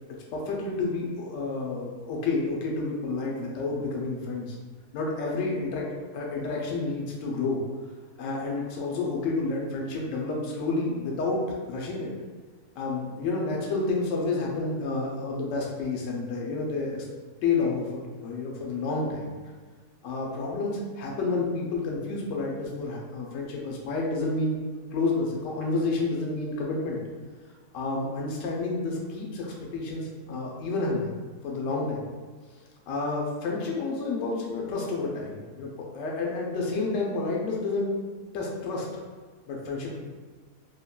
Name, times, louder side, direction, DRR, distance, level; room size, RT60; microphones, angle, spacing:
voice 1, 0.3-4.5 4.9-5.9 6.1-7.6 8.2-11.4 11.7-12.1 12.8-17.1 17.4-19.3 20.0-24.6 24.9-27.0 27.7-31.1 31.4-32.0 32.9-37.9 38.3-38.9 39.5-40.0, left 3 dB, 70° left, -2 dB, 0.8 m, -30 dB
3.5 x 2.2 x 2.2 m, 1.5 s
omnidirectional pair, 1.7 m